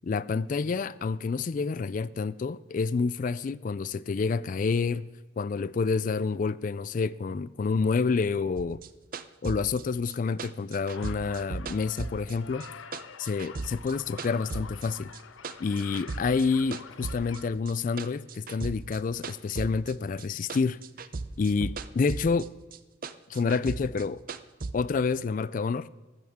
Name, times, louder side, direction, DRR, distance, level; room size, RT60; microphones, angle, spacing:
voice 1, 0.0-8.8 9.4-12.7 13.2-15.1 15.6-20.8 21.4-22.5 23.3-24.2 24.7-25.9, left 4 dB, 45° left, 0.3 m, -28 dB
sound 1, 8.6-12.7 12.9-14.9 15.1-16.5 16.7-20.2 20.5-22.5 22.7-24.7, right 3 dB, 45° right, 0.5 m, -37 dB
sound 2, 10.9-17.5, left 6 dB, 90° left, 0.7 m, -47 dB
14.0 x 14.0 x 3.6 m
head